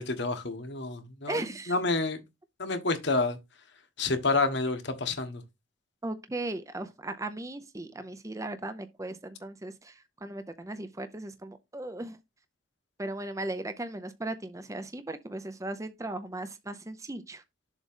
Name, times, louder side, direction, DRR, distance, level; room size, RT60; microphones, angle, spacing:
voice 1, 0.0-2.2 2.6-3.4 4.0-5.4, left 3 dB, 60° left, 1.4 m, -29 dB
voice 2, 1.3-1.7 6.0-12.2 13.0-17.4, right 2 dB, 15° right, 0.6 m, -37 dB
7.3 x 3.1 x 5.5 m
head